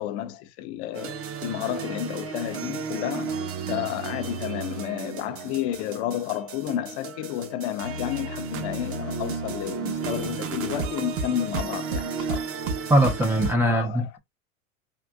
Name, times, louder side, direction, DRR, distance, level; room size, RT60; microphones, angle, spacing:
voice 1, 0.0-3.4 3.7-12.5 13.6-14.2, left 11 dB, 50° left, 0.6 m, -31 dB
sound 1, 0.9-13.6, right 5 dB, 30° right, 0.7 m, -33 dB
voice 2, 12.9-14.2, right 1 dB, 5° right, 0.3 m, -21 dB
3.7 x 2.5 x 2.3 m
hypercardioid pair, 105°, 43 cm